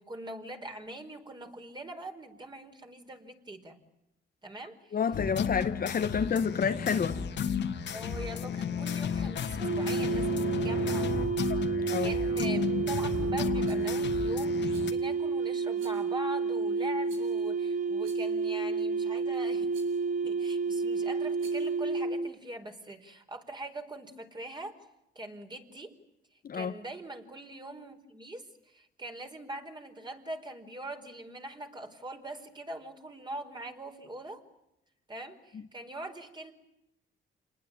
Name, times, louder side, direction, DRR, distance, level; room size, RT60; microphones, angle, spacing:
voice 1, 0.0-3.8 4.4-5.0 7.9-11.1 12.0-19.7 20.2-24.8 25.1-26.0 26.5-34.4 35.1-36.5, right 1 dB, 20° right, 4.8 m, -42 dB
voice 2, 4.9-7.2 11.9-12.1 26.4-26.7, left 6 dB, 45° left, 1.6 m, -29 dB
sound 1, 5.1-14.9, left 6 dB, 65° left, 2.7 m, -33 dB
sound 2, 9.6-22.3, right 4 dB, 40° right, 1.5 m, -30 dB
Rattle, 13.6-13.9 14.7-15.1 15.7-16.1 17.0-17.5 18.0-18.4 19.7-20.0 21.3-21.8, right 5 dB, 85° right, 7.5 m, -55 dB
28.0 x 20.5 x 9.1 m
cardioid pair, 90°, 20 cm